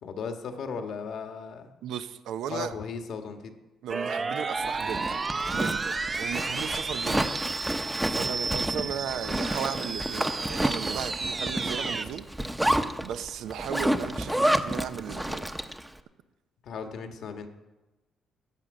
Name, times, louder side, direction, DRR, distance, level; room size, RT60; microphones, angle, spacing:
voice 1, 0.0-1.7 2.5-3.5 16.6-17.5, left 5 dB, 70° left, 6 dB, 1.5 m, -36 dB
voice 2, 1.8-2.7 3.8-7.3 8.1-12.3 13.0-15.4, right 9 dB, 85° right, 10 dB, 0.8 m, -36 dB
sound 1, 3.9-12.1, right 4 dB, 35° right, 0.8 m, -32 dB
Zipper (clothing), 4.7-15.9, right 1 dB, 5° right, 0.9 m, -30 dB
15.0 x 8.4 x 6.5 m, 1.1 s
cardioid pair, 90°, 0 cm